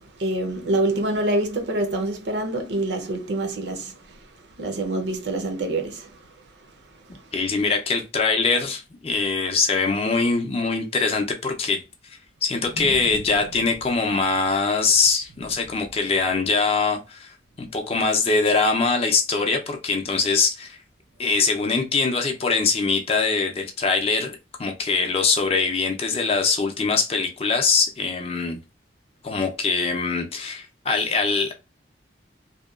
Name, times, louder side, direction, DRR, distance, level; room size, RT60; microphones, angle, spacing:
voice 1, 0.0-6.7 7.0-7.3 12.7-13.2, right 2 dB, 70° right, 0.6 m, -27 dB
voice 2, 7.3-20.8 21.2-28.6 29.2-31.5, left 4 dB, 35° left, 0.4 m, -23 dB
2.7 x 2.2 x 2.3 m
head